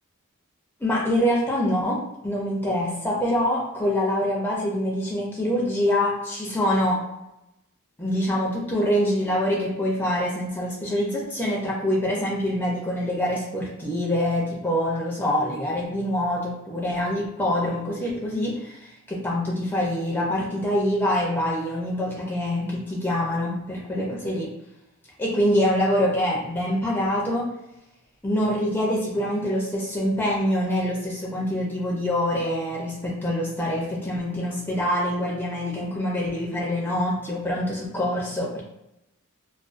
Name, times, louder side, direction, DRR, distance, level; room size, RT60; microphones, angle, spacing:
voice 1, 0.8-7.0 8.0-24.5 25.2-27.5 28.2-38.6, left 1 dB, 10° left, -4 dB, 0.4 m, -25 dB
2.4 x 2.2 x 2.4 m, 0.90 s
head